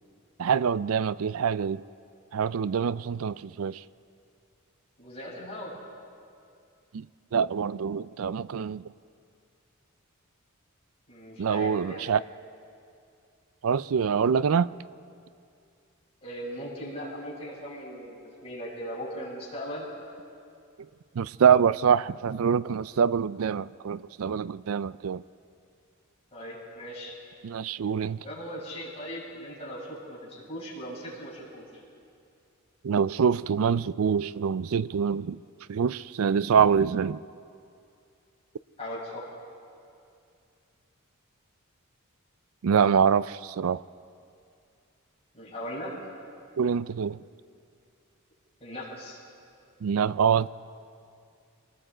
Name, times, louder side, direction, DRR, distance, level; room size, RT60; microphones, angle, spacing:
voice 1, 0.4-1.8 2.3-3.8 6.9-7.1 7.3-8.8 11.4-12.2 13.6-14.7 21.2-25.2 27.4-28.2 32.8-35.4 35.7-37.2 42.6-43.8 46.6-47.2 49.8-50.5, right 7 dB, 70° right, 0.4 m, -25 dB
voice 2, 5.0-5.7 11.1-12.3 16.2-19.9 26.3-27.1 28.2-31.8 38.8-39.2 45.3-45.9 48.6-49.2, equal, 30° left, 7.4 m, -39 dB
26.0 x 20.0 x 5.0 m
head